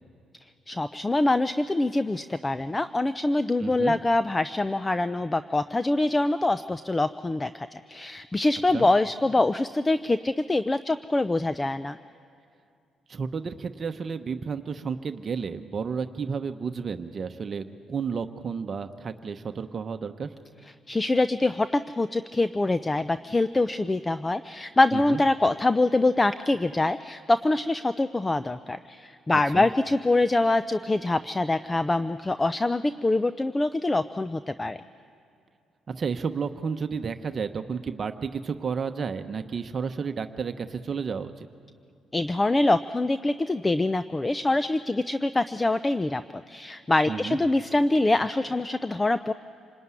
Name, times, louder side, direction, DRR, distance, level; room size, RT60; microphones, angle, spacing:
voice 1, 0.7-12.0 20.9-34.8 42.1-46.2 46.5-49.3, left 2 dB, 20° left, 12 dB, 0.5 m, -24 dB
voice 2, 3.6-4.0 8.7-8.9 13.1-20.3 24.9-25.2 29.5-29.7 35.9-41.5 47.1-47.4, right 6 dB, 45° right, 7 dB, 1.0 m, -32 dB
27.0 x 19.5 x 9.7 m, 2.4 s
cardioid pair, 90°, 0 cm